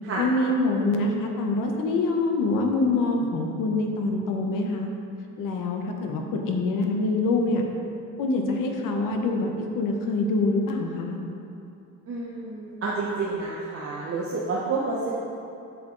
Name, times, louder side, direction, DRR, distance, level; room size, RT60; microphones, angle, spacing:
voice 1, 0.2-4.9 5.4-7.6 8.2-11.2, left 2 dB, 85° left, 2 dB, 1.1 m, -25 dB
voice 2, 12.1-15.1, right 3 dB, 45° right, -5 dB, 0.9 m, -29 dB
7.9 x 6.9 x 3.9 m, 2.7 s
cardioid pair, 150°, 32 cm